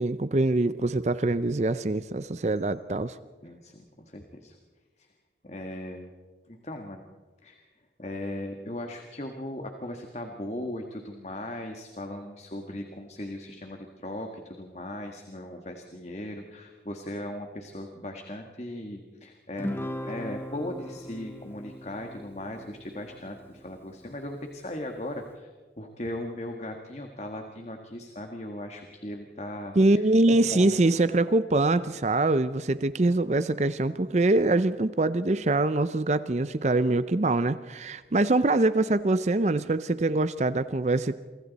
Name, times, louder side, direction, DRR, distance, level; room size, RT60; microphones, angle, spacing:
voice 1, 0.0-3.2 29.8-41.1, right 2 dB, 40° right, 13 dB, 0.5 m, -24 dB
voice 2, 3.4-4.5 5.0-5.1 5.4-6.1 6.5-7.0 7.4-7.7 8.0-19.7 20.0-25.5 25.8-30.8, left 1 dB, 40° left, 4 dB, 1.6 m, -38 dB
Guitar, 19.6-24.2, left 1 dB, 15° left, 1.1 m, -39 dB
28.5 x 24.5 x 4.1 m, 1.4 s
head